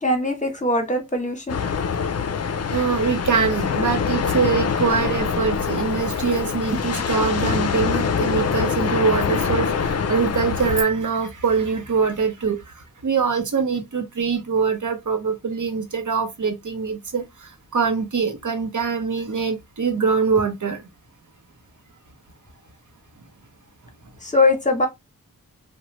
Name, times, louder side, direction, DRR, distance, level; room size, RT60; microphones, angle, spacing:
voice 1, 0.0-1.6 24.2-24.9, left 2 dB, 20° left, 0.9 m, -21 dB
sound 1, 1.5-10.8, left 6 dB, 45° left, 0.4 m, -24 dB
voice 2, 2.7-12.6 13.0-20.8, right 5 dB, 60° right, 0.8 m, -23 dB
3.0 x 2.2 x 2.9 m
wide cardioid pair, 75°, 35 cm